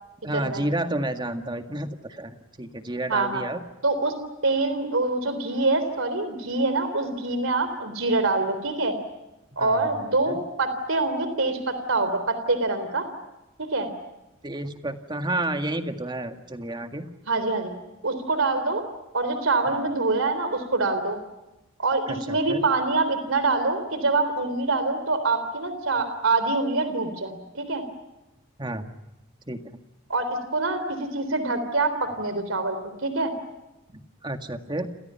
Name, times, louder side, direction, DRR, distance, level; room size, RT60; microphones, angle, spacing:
voice 1, 0.2-3.6 9.6-9.9 10.3-10.4 14.4-17.1 19.8-19.9 22.1-22.6 28.6-28.9 29.5-29.6 34.2-34.9, right 1 dB, 20° right, 6 dB, 1.9 m, -30 dB
voice 2, 3.1-3.4 3.8-4.1 4.4-9.0 9.6-13.0 13.6-13.9 17.3-17.7 18.0-18.8 19.1-21.2 21.8-27.8 30.1-33.3, right 3 dB, 70° right, 10 dB, 3.7 m, -25 dB
30.0 x 28.0 x 5.7 m, 0.98 s
head